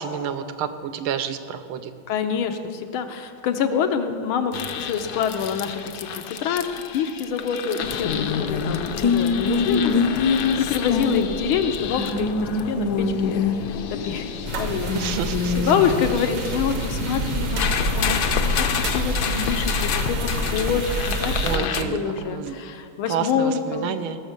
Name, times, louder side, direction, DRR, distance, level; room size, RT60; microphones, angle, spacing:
voice 1, 0.0-1.9 14.9-15.6 21.4-22.6 23.1-24.2, right 8 dB, 85° right, 10 dB, 1.5 m, -29 dB
voice 2, 2.1-14.3 14.6-15.1 15.6-23.9, left 7 dB, 85° left, 7 dB, 1.6 m, -26 dB
sound 1, 4.5-21.8, left 5 dB, 65° left, 1.0 m, -26 dB
sound 2, 14.5-21.6, right 4 dB, 60° right, 1.6 m, -29 dB
17.5 x 6.4 x 6.7 m, 2.3 s
omnidirectional pair, 2.3 m